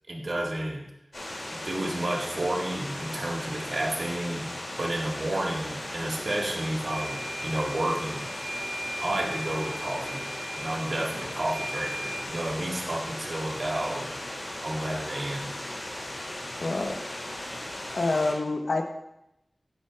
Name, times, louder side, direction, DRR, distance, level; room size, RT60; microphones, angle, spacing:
voice 1, 0.1-0.8 1.6-4.5 4.8-8.3 9.0-10.3 10.5-14.1 14.6-15.5, right 1 dB, 70° right, -1 dB, 1.8 m, -31 dB
sound 1, 1.1-18.3, left 1 dB, 55° left, 2.6 m, -37 dB
sound 2, 5.8-5.9 6.9-12.2, right 1 dB, 85° right, 1.8 m, -38 dB
voice 2, 16.6-17.0 17.9-18.9, left 2 dB, 90° left, 4 dB, 0.9 m, -27 dB
10.5 x 9.0 x 2.4 m, 0.84 s
wide cardioid pair, 55°, 0 cm